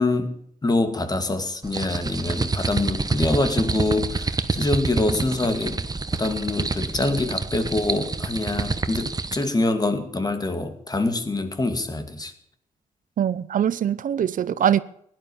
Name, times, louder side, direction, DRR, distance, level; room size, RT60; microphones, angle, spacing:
voice 1, 0.0-5.9 6.1-12.3, left 2 dB, 30° left, 2.3 m, -25 dB
sound 1, 1.6-9.5, right 3 dB, 30° right, 1.1 m, -28 dB
voice 2, 13.2-14.8, right 9 dB, 75° right, 0.7 m, -22 dB
17.0 x 12.0 x 7.1 m
cardioid pair, 95°, 14 cm